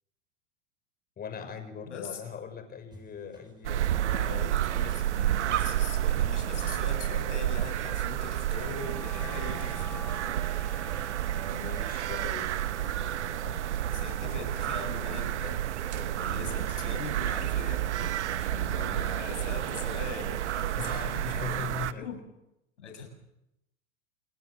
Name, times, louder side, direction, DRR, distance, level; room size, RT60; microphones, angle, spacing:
voice 1, 1.2-4.3 11.3-12.5 13.0-13.6 16.0-16.8 20.7-22.1, left 6 dB, 25° left, 8 dB, 6.0 m, -41 dB
voice 2, 1.9-2.2 4.1-10.2 13.9-15.6 16.2-22.2 22.8-23.1, left 5 dB, 80° left, 4 dB, 7.5 m, -41 dB
sound 1, 2.9-21.2, right 2 dB, 10° right, 7.0 m, -57 dB
sound 2, 3.6-21.9, right 12 dB, 75° right, 1.2 m, -30 dB
Wind instrument woodwind instrument, 8.7-18.9, left 1 dB, 5° left, 4.6 m, -49 dB
28.5 x 19.0 x 7.5 m, 0.85 s
hypercardioid pair, 100°, 35 cm